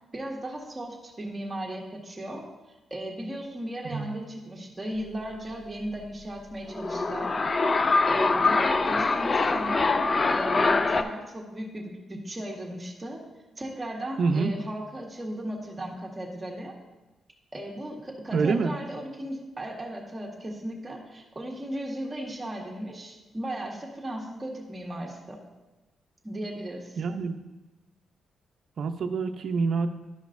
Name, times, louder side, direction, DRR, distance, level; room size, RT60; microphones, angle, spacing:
voice 1, 0.1-2.5 2.9-7.3 8.1-9.9 10.3-13.2 13.6-16.7 17.5-25.4 26.2-27.0, right 1 dB, 20° right, -1 dB, 1.5 m, -36 dB
sound 1, 6.7-11.0, left 3 dB, 35° left, 0.4 m, -24 dB
voice 2, 14.2-14.5 18.3-18.8 27.0-27.4 28.8-29.9, right 4 dB, 65° right, 8 dB, 0.6 m, -26 dB
11.5 x 5.1 x 2.6 m, 1.1 s
cardioid pair, 105°, 0 cm